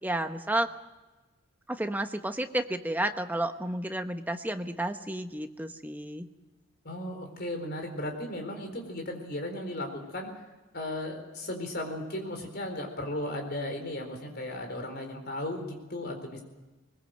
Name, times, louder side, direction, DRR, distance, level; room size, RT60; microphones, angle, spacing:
voice 1, 0.0-0.7 1.7-6.3, right 1 dB, 10° right, 7 dB, 1.0 m, -31 dB
voice 2, 6.8-10.3 10.7-16.4, left 1 dB, 45° left, 4 dB, 4.2 m, -36 dB
21.5 x 21.0 x 7.8 m, 1.2 s
head